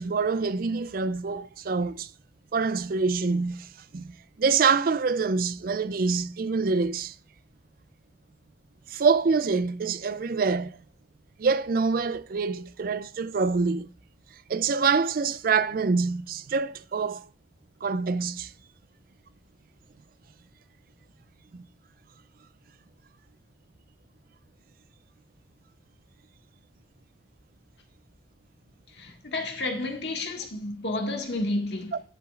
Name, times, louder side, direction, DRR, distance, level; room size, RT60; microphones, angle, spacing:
voice 1, 0.0-2.1 2.5-7.1 8.9-10.8 11.4-13.9 14.5-17.2 17.8-18.5 21.5-21.6, right 4 dB, 55° right, 0.4 m, -26 dB
voice 2, 28.9-32.0, left 2 dB, 70° left, 1.8 m, -31 dB
10.5 x 7.7 x 2.5 m
head